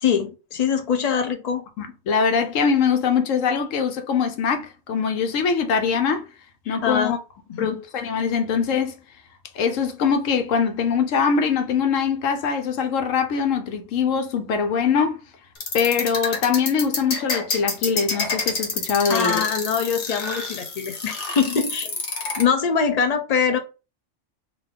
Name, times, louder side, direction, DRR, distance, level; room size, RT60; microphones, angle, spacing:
voice 1, 0.0-1.6 6.7-7.2 7.5-7.8 19.1-22.0 22.4-23.6, left 6 dB, 45° left, 0.5 m, -23 dB
voice 2, 1.8-6.3 6.7-7.2 7.6-8.9 9.5-15.2 15.7-19.4, left 6 dB, 85° left, 1.1 m, -22 dB
sound 1, 15.6-22.4, left 3 dB, 65° left, 1.4 m, -27 dB
3.7 x 2.6 x 3.6 m
omnidirectional pair, 1.3 m